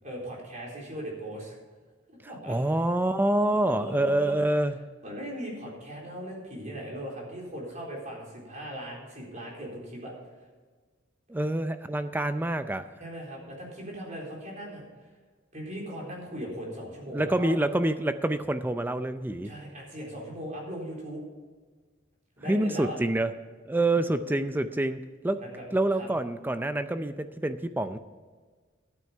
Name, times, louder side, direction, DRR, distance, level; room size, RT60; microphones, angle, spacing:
voice 1, 0.0-1.6 2.3-2.6 3.6-4.3 5.0-10.1 13.0-15.1 15.5-17.6 19.4-21.2 22.4-23.0 23.7-24.1 25.4-25.6 26.0-26.1, equal, 40° right, -2 dB, 3.9 m, -39 dB
voice 2, 2.5-4.7 11.3-12.8 17.1-19.5 22.5-23.3 23.7-25.4 25.7-28.0, right 1 dB, 10° right, 10 dB, 0.4 m, -27 dB
12.0 x 9.4 x 5.5 m, 1.5 s
head